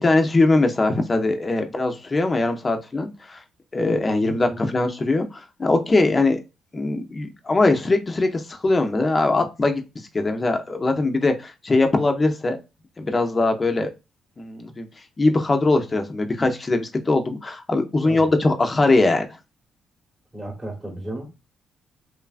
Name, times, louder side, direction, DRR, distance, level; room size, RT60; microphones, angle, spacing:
voice 1, 0.0-3.4 3.7-6.4 6.7-9.8 10.1-12.6 13.0-13.9 14.4-14.9 15.2-19.4, left 2 dB, 25° left, 0.5 m, -21 dB
voice 2, 4.5-4.8 18.0-18.3 20.3-21.3, right 1 dB, 15° right, 0.9 m, -34 dB
3.1 x 2.2 x 2.4 m
cardioid pair, 90°, 0 cm